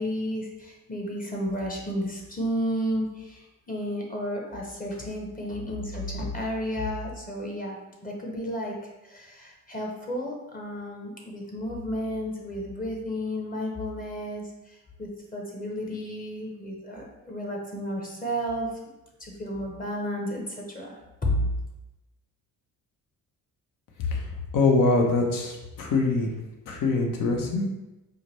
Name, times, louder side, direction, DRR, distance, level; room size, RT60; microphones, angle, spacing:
voice 1, 0.0-18.8 19.2-21.5, equal, 25° left, -1 dB, 0.8 m, -32 dB
voice 2, 24.5-26.3 26.7-27.6, left 3 dB, 65° left, 1 dB, 0.8 m, -23 dB
4.7 x 2.2 x 3.1 m, 1.0 s
cardioid pair, 95°, 34 cm